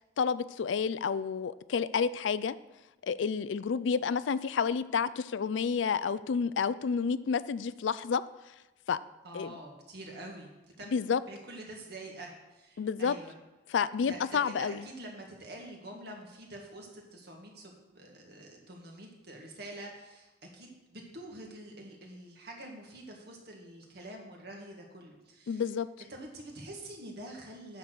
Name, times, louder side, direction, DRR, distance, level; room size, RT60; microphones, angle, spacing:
voice 1, 0.0-2.6 3.0-8.2 8.9-9.0 9.3-9.5 10.9-11.2 12.8-13.2 13.7-14.8 25.5-25.9, left 6 dB, 80° left, 16 dB, 0.4 m, -30 dB
voice 2, 9.2-10.5 10.8-10.9 11.3-13.4 14.1-25.7 26.1-27.8, right 1 dB, 60° right, 0 dB, 2.1 m, -46 dB
9.3 x 6.7 x 6.1 m, 1.0 s
head